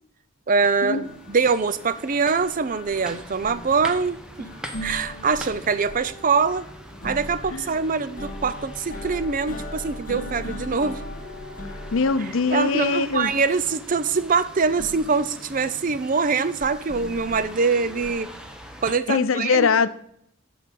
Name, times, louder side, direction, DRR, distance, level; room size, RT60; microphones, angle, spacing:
voice 1, 0.5-4.5 4.8-6.7 7.0-11.0 12.5-18.3 18.8-19.7, right 5 dB, 40° right, 14 dB, 0.5 m, -23 dB
sound 1, 0.6-19.0, equal, 5° right, 0.9 m, -43 dB
sound 2, 1.0-18.1, left 1 dB, 40° left, 1.2 m, -40 dB
voice 2, 11.9-13.3 19.1-19.9, left 4 dB, 80° left, 14 dB, 0.6 m, -21 dB
11.5 x 4.0 x 7.5 m, 0.70 s
head